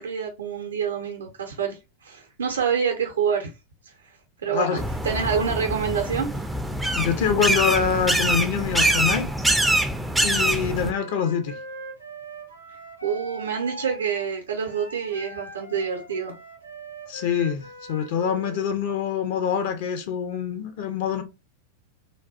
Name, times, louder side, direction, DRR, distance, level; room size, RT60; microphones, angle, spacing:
voice 1, 0.0-3.5 4.4-6.4 13.0-16.3, right 7 dB, 65° right, 0.5 m, -27 dB
sound 1, 4.8-10.9, right 1 dB, 5° right, 0.4 m, -24 dB
voice 2, 6.9-9.3 10.2-11.6 17.1-21.2, left 7 dB, 50° left, 0.5 m, -25 dB
Wind instrument woodwind instrument, 10.4-18.7, right 2 dB, 85° left, 0.8 m, -41 dB
3.2 x 2.3 x 2.5 m
figure-of-eight pair, 90°, 0 cm